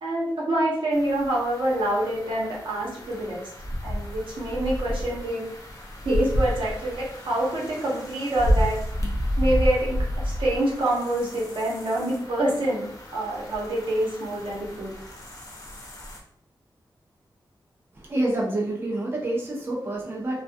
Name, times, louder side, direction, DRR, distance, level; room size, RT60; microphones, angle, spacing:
voice 1, 0.0-3.4 3.8-5.4 6.0-8.8 9.4-14.9, right 1 dB, 80° right, -4 dB, 0.8 m, -26 dB
sound 1, 0.9-16.2, equal, 45° left, 0.6 m, -31 dB
voice 2, 17.9-20.4, right 1 dB, 30° right, -3 dB, 0.5 m, -27 dB
2.3 x 2.2 x 2.5 m, 0.69 s
wide cardioid pair, 145°, 8 cm